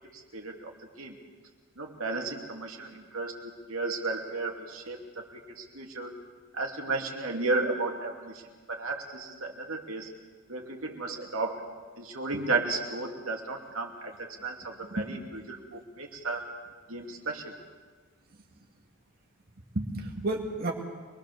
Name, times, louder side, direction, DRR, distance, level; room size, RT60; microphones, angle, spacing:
voice 1, 0.3-0.7 1.0-1.2 1.8-6.1 6.5-8.4 8.7-10.1 10.5-11.6 12.0-15.2 15.5-16.5 16.9-17.5, right 3 dB, 70° right, 1 dB, 2.8 m, -34 dB
voice 2, 14.8-15.5 18.6-18.7 19.7-20.7, right 2 dB, 45° right, 0 dB, 2.3 m, -33 dB
26.0 x 21.5 x 6.9 m, 1.5 s
head